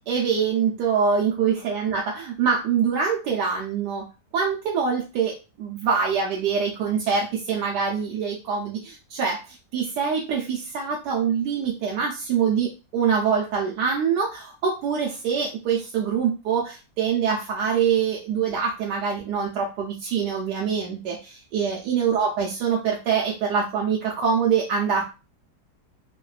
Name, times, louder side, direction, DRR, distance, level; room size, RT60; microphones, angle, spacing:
voice 1, 0.1-4.1 4.3-25.0, right 6 dB, 90° right, -2 dB, 1.2 m, -24 dB
3.1 x 2.1 x 2.3 m, 0.31 s
omnidirectional pair, 1.7 m